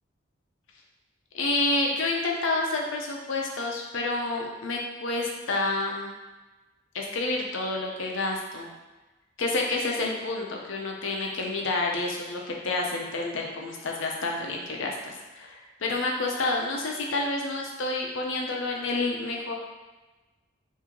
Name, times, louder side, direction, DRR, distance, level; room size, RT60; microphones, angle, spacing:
voice 1, 1.3-6.1 6.9-8.7 9.4-19.5, left 2 dB, 75° left, 0 dB, 0.6 m, -29 dB
3.7 x 2.7 x 3.0 m, 1.2 s
head